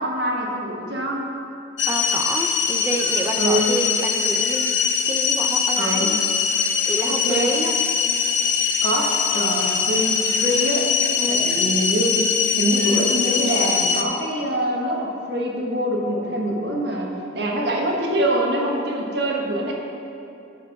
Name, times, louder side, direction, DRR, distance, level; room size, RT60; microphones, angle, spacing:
voice 1, 0.0-1.3 3.4-3.7 5.8-6.2 7.1-7.5 8.8-10.9 11.3-12.3 12.6-19.7, right 1 dB, 65° right, -1 dB, 1.3 m, -24 dB
sound 1, 1.8-14.0, left 6 dB, 80° left, 0.7 m, -22 dB
voice 2, 1.9-6.2 6.9-7.8 11.2-11.5, right 2 dB, 15° right, 5 dB, 0.4 m, -29 dB
10.5 x 4.7 x 5.8 m, 2.7 s
head